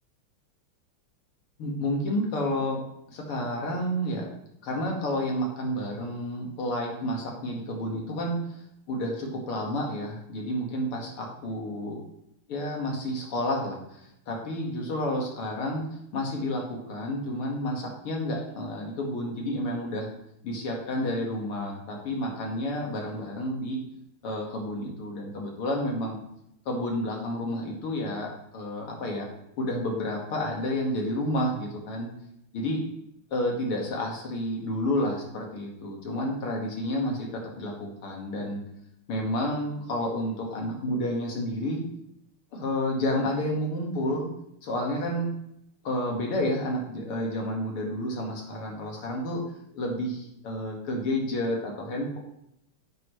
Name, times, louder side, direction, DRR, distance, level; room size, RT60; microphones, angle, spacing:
voice 1, 1.6-2.8 3.1-4.3 4.6-8.6 8.9-12.0 12.5-14.0 14.3-15.8 16.1-20.1 20.4-23.8 24.2-26.2 26.7-29.3 29.6-32.1 32.5-32.8 33.3-38.6 39.1-41.8 42.5-44.3 44.6-45.3 45.8-49.4 49.7-52.2, left 1 dB, 80° left, -1 dB, 2.7 m, -30 dB
10.5 x 7.5 x 3.2 m, 0.78 s
omnidirectional pair, 2.4 m